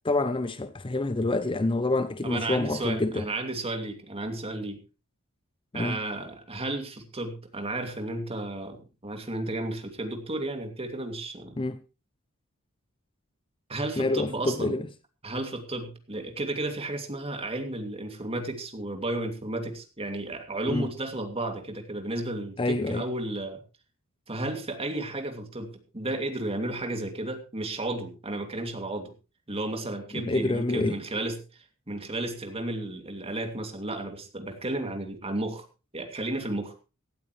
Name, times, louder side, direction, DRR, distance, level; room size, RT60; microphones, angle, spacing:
voice 1, 0.0-3.2 5.7-6.0 11.6-11.8 14.0-14.9 20.7-20.9 22.6-23.0 30.1-31.0, left 2 dB, 25° left, 0.7 m, -27 dB
voice 2, 2.2-4.8 5.7-11.6 13.7-14.7 15.2-23.6 24.3-25.7 25.9-29.1 29.5-31.4 31.9-35.6 35.9-36.7, right 2 dB, 25° right, 2.6 m, -33 dB
17.5 x 13.0 x 3.2 m
head